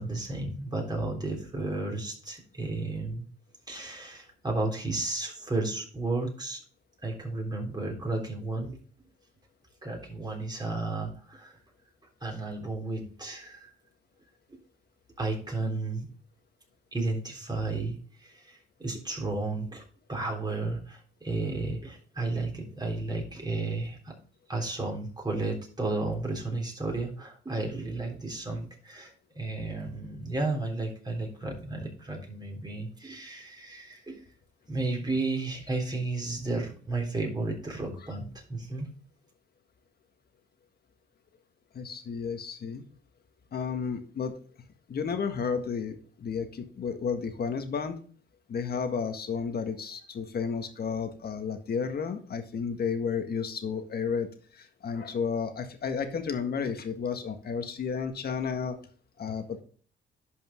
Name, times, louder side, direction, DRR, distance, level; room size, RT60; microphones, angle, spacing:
voice 1, 0.0-3.2 3.7-6.6 7.0-8.7 9.8-11.6 12.2-13.7 15.2-16.1 16.9-19.8 20.1-24.1 24.5-34.2 34.7-38.9, right 2 dB, 20° right, 0 dB, 3.5 m, -33 dB
voice 2, 41.7-42.8 43.5-44.3 44.9-48.0 48.5-54.3 54.5-58.8 59.2-59.6, left 6 dB, 50° left, 7 dB, 1.7 m, -32 dB
11.0 x 5.4 x 3.8 m, 0.43 s
cardioid pair, 90°, 20 cm